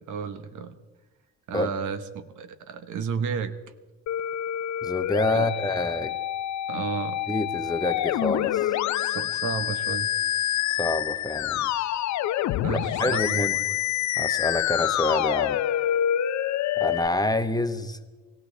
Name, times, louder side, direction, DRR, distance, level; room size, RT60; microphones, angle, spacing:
voice 1, 0.1-0.8 1.5-3.6 5.3-5.5 6.7-7.2 9.0-10.1 12.6-13.5, right 6 dB, 80° right, 10 dB, 1.1 m, -32 dB
Musical instrument, 4.1-17.1, left 12 dB, 70° left, 0.6 m, -27 dB
voice 2, 4.8-6.2 7.3-8.7 10.7-11.7 13.0-13.6 14.2-15.6 16.8-18.0, left 2 dB, 15° left, 8 dB, 1.0 m, -27 dB
21.5 x 16.0 x 3.4 m, 1.2 s
cardioid pair, 90°, 30 cm